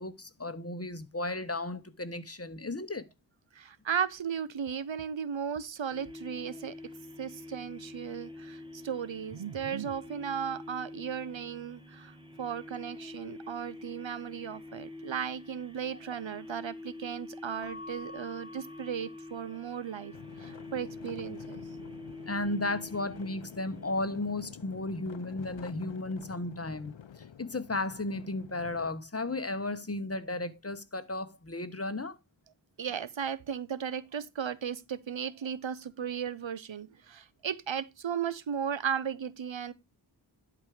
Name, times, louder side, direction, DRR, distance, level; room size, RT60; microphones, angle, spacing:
voice 1, 0.0-3.1 15.9-16.0 22.3-26.9 27.4-32.2, left 2 dB, 30° left, 1.1 m, -34 dB
voice 2, 3.5-6.7 7.2-20.1 20.4-21.6 32.8-39.7, right 8 dB, 85° right, 0.8 m, -36 dB
sound 1, 5.9-24.2, left 2 dB, 10° right, 1.7 m, -47 dB
Keyboard (musical) / Bell, 17.6-20.0, left 2 dB, 70° right, 2.7 m, -49 dB
sound 2, 20.1-28.9, left 8 dB, 80° left, 0.7 m, -48 dB
11.0 x 4.8 x 4.9 m
wide cardioid pair, 55°, 44 cm